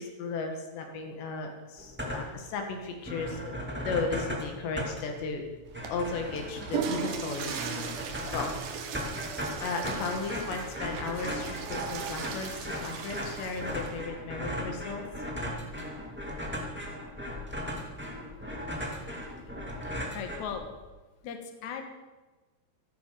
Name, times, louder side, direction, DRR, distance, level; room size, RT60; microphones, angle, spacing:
voice 1, 0.0-3.6 3.8-5.4 5.9-7.6 8.3-8.5 9.6-15.0, left 4 dB, 75° left, 3 dB, 4.1 m, -35 dB
sound 1, 1.8-2.5 2.8-2.9 3.1-20.9, equal, 5° right, 0.9 m, -37 dB
Water / Toilet flush, 5.7-14.0, right 6 dB, 75° right, 3.5 m, -38 dB
voice 2, 19.8-20.6 21.2-21.8, left 7 dB, 55° left, 4 dB, 2.3 m, -38 dB
14.0 x 13.0 x 6.9 m, 1.2 s
omnidirectional pair, 5.1 m